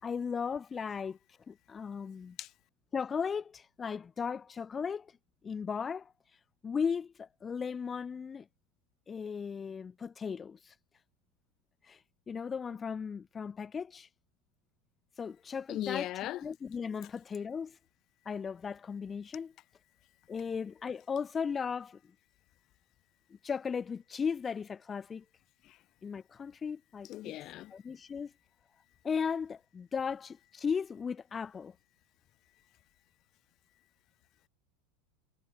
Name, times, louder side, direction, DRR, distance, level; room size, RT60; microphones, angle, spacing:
voice 1, 0.0-1.2 1.5-2.4 2.9-5.1 5.4-6.1 6.6-8.5 9.1-10.7 11.8-12.0 12.3-14.1 15.2-16.1 16.4-17.8 18.3-19.5 20.3-22.0 23.4-25.2 26.0-27.4 27.7-28.3 29.0-31.7, left 6 dB, 25° left, 5.4 m, -36 dB
voice 2, 15.7-16.4 25.6-25.8 27.1-27.7, left 15 dB, 45° left, 6.1 m, -38 dB
hypercardioid pair, 85°, 0 cm